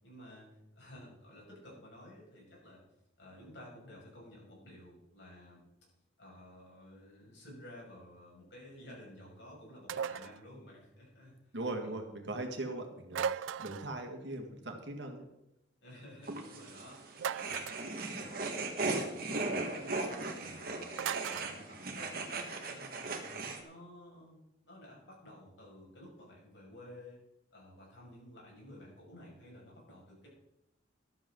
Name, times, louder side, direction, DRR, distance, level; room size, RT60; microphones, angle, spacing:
voice 1, 0.0-2.8 3.2-5.7 6.2-11.4 11.8-11.9 15.8-17.6 17.9-20.0 20.3-23.3 23.6-27.2 27.5-30.3, left 1 dB, 70° left, -3 dB, 6.1 m, -53 dB
sound 1, 9.9-10.4 13.1-13.9 17.2-17.9 21.0-21.5, right 7 dB, 90° right, 0.4 m, -36 dB
voice 2, 11.5-15.3, right 2 dB, 70° right, 3 dB, 2.0 m, -40 dB
sound 2, 16.2-23.6, right 3 dB, 50° right, 1.8 m, -38 dB
13.5 x 12.5 x 3.9 m, 0.85 s
head